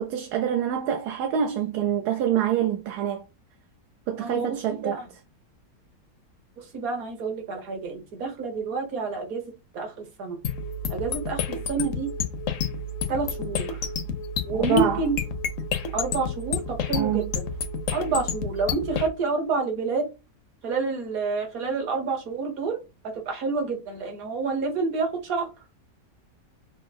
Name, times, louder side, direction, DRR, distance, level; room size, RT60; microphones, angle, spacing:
voice 1, 0.0-3.2 4.1-5.0 14.6-15.0 16.9-17.3, right 9 dB, 70° right, 1.1 m, -26 dB
voice 2, 4.2-5.1 6.6-9.4 9.7-10.4 10.9-12.1 13.1-13.7 14.4-15.2 15.9-17.5 17.9-20.0 20.6-22.8 23.1-25.5, right 4 dB, 55° right, 1.5 m, -28 dB
sound 1, 10.4-19.1, left 5 dB, 65° left, 0.8 m, -30 dB
5.6 x 2.0 x 4.2 m
omnidirectional pair, 1.9 m